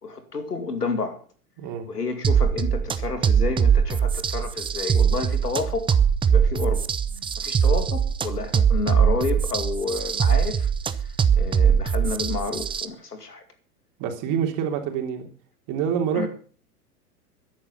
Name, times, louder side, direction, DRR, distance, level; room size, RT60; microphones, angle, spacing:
voice 1, 0.0-1.2 1.9-6.0 6.3-6.8 7.4-10.7 11.4-13.4 16.1-16.3, left 4 dB, 90° left, 2.4 m, -30 dB
voice 2, 1.6-1.9 7.2-7.3 14.0-15.3 15.7-16.3, right 8 dB, 40° right, 3.3 m, -26 dB
sound 1, 2.2-12.9, right 7 dB, 10° right, 0.6 m, -21 dB
13.5 x 11.0 x 5.7 m
figure-of-eight pair, 95°, 46 cm